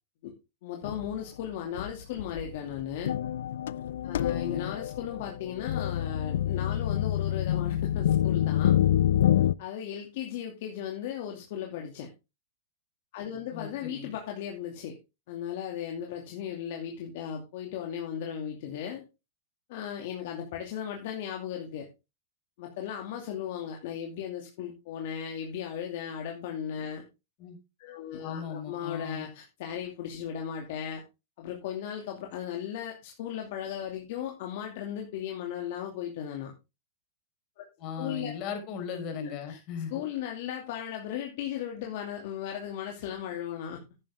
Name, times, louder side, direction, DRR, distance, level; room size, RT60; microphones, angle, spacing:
voice 1, 0.6-3.1 4.0-8.8 9.6-12.1 13.1-15.0 15.3-19.0 19.7-21.9 22.6-27.0 27.8-31.0 31.4-36.5 37.6-37.7 38.0-38.3 39.5-39.6 39.9-43.8, left 9 dB, 55° left, 2 dB, 2.5 m, -36 dB
sound 1, 0.8-1.2 1.8-1.9 2.2-9.5, left 11 dB, 75° left, 0.5 m, -27 dB
voice 2, 4.2-4.7 13.5-14.1 27.4-27.6 28.2-29.3 37.8-40.0, left 6 dB, 35° left, 5 dB, 4.6 m, -37 dB
11.5 x 9.6 x 3.6 m, 0.27 s
hypercardioid pair, 145°, 0 cm